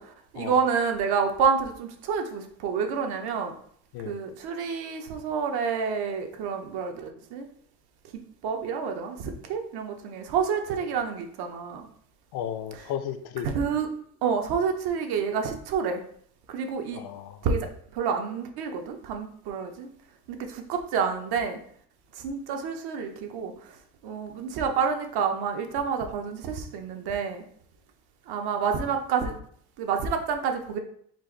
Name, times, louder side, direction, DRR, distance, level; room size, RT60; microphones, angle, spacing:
voice 1, 0.0-3.5 4.0-7.5 8.1-11.9 13.4-13.9 14.2-16.0 16.5-17.0 17.4-17.7 17.9-19.9 20.3-21.6 22.1-23.8 24.0-27.4 28.3-29.4 29.8-30.8, right 6 dB, 70° right, 5 dB, 0.9 m, -28 dB
voice 2, 12.3-13.5 16.9-17.4, left 10 dB, 65° left, 10 dB, 0.6 m, -34 dB
4.5 x 2.5 x 4.5 m, 0.62 s
cardioid pair, 125°, 40 cm